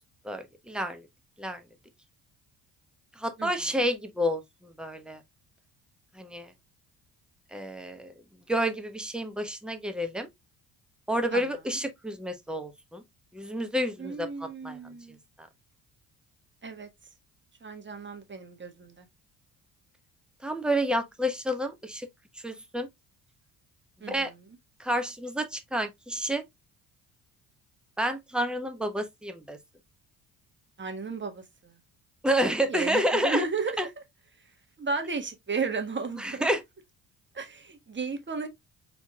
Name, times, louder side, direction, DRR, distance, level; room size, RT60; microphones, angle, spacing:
voice 1, 0.2-1.0 1.4-1.6 3.2-5.2 6.1-6.5 7.5-8.1 8.5-10.3 11.1-13.0 13.3-14.8 15.4-15.5 20.4-22.1 22.4-22.9 24.1-24.3 24.8-26.4 28.0-29.6 32.2-33.4 33.8-33.9 36.2-36.6, equal, ahead, 1.1 m, -29 dB
voice 2, 14.0-15.2 16.6-16.9 17.6-19.0 24.0-24.4 30.8-31.8 32.7-33.7 34.8-36.5 37.3-38.5, right 4 dB, 25° right, 1.4 m, -34 dB
4.4 x 4.3 x 2.3 m
hypercardioid pair, 50°, 44 cm